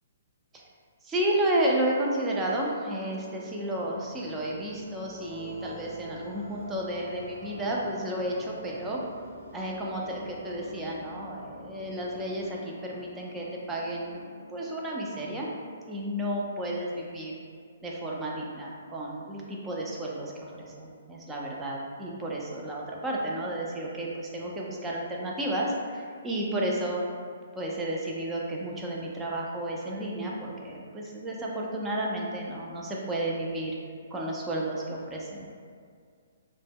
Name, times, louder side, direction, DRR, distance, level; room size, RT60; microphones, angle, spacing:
voice 1, 1.0-9.0 9.5-14.2 14.5-15.5 15.9-17.3 17.8-27.0 27.5-33.7 34.1-35.5, right 1 dB, 15° right, -3 dB, 0.3 m, -32 dB
sound 1, 3.0-15.9, left 1 dB, 75° right, 0.6 m, -47 dB
2.1 x 2.0 x 3.4 m, 2.1 s
hypercardioid pair, 145°, 0 cm